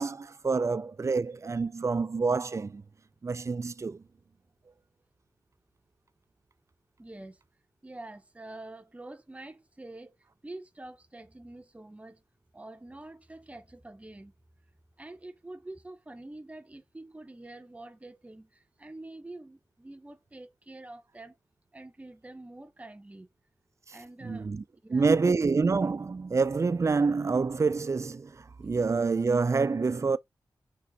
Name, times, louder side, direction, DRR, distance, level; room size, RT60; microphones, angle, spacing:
voice 1, 0.0-2.8 3.2-4.0 23.9-24.0 24.2-24.6 24.9-30.2, right 4 dB, 40° right, 0.5 m, -27 dB
voice 2, 7.0-7.4 7.8-10.2 10.4-12.2 12.5-14.3 15.0-21.4 21.7-23.3 23.9-24.5 24.8-25.2, right 2 dB, 15° right, 0.9 m, -46 dB
6.0 x 4.3 x 4.0 m
cardioid pair, 60°, 8 cm